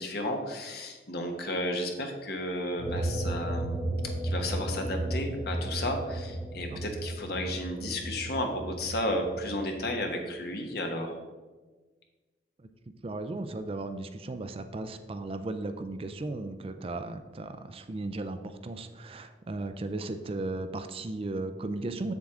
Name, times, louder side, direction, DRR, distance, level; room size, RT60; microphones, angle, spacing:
voice 1, 0.0-3.8 4.2-11.1, left 1 dB, 60° left, 3 dB, 1.2 m, -33 dB
sound 1, 2.8-9.7, right 1 dB, 15° left, 1.5 m, -34 dB
voice 2, 13.0-22.1, right 2 dB, 30° right, 9 dB, 0.4 m, -36 dB
7.4 x 7.3 x 3.7 m, 1.3 s
head